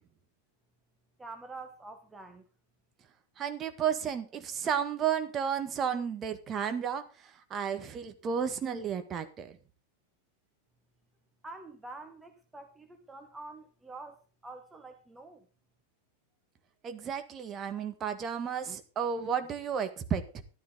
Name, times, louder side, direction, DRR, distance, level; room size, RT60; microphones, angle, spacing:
voice 1, 1.2-2.4 11.4-15.5, right 3 dB, 10° right, 1.4 m, -47 dB
voice 2, 3.4-7.0 7.5-9.5 16.8-20.4, right 7 dB, 25° right, 1.7 m, -32 dB
13.5 x 12.5 x 4.0 m
figure-of-eight pair, 90°, 0 cm